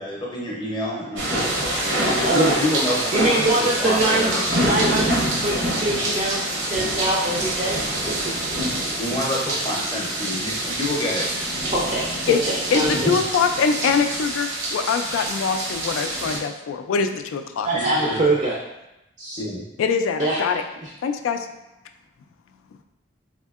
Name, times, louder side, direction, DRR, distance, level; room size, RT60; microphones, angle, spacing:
voice 1, 0.0-4.4 8.6-8.7 9.0-11.3 17.7-18.3 19.4-19.6, left 1 dB, 25° left, -3 dB, 0.6 m, -28 dB
sound 1, 1.2-16.4, right 1 dB, 70° right, 0.8 m, -26 dB
voice 2, 2.2-2.5 2.9-4.3 4.6-7.8 11.7-12.4 12.7-12.9 17.6-18.6 19.2-19.4 20.2-20.4, right 2 dB, 35° right, -5 dB, 0.4 m, -23 dB
voice 3, 12.7-17.7 19.8-20.6 21.0-21.5 22.7-22.8, left 6 dB, 90° left, 8 dB, 0.3 m, -23 dB
4.2 x 2.6 x 2.4 m, 0.93 s
head